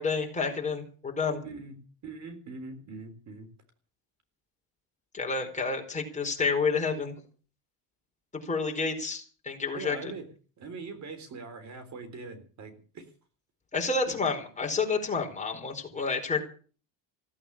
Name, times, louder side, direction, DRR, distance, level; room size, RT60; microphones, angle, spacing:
voice 1, 0.0-1.4 5.1-7.1 8.4-10.1 13.7-16.4, left 4 dB, 20° left, 3 dB, 4.6 m, -29 dB
voice 2, 1.4-3.5 9.7-10.3 10.6-13.1 14.1-14.2, right 4 dB, 45° right, 9 dB, 3.8 m, -42 dB
16.5 x 8.7 x 8.7 m, 0.40 s
cardioid pair, 120°, 39 cm